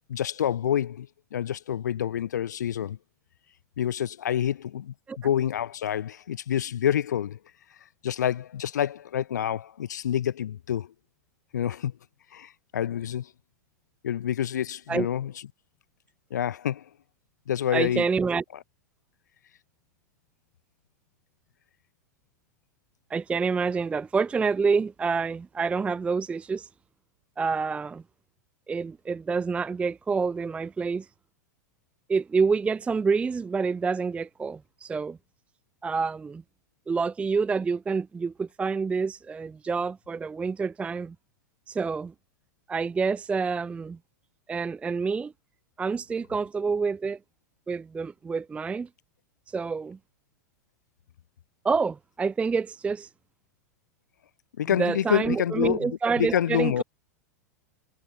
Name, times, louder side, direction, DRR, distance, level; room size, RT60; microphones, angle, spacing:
voice 1, 0.1-3.0 3.8-7.4 8.0-10.9 11.5-11.9 12.3-13.3 14.0-15.3 16.3-16.9 17.5-18.1 54.6-56.8, left 10 dB, 75° left, 1.0 m, -28 dB
voice 2, 17.7-18.4 23.1-26.7 27.4-28.0 28.7-31.1 32.1-35.2 35.8-36.4 36.9-41.2 41.7-42.1 42.7-44.0 44.5-45.3 45.8-47.2 47.7-48.9 49.5-50.0 51.6-53.1 54.8-56.8, right 5 dB, 15° right, 0.3 m, -27 dB
hypercardioid pair, 95°, 10 cm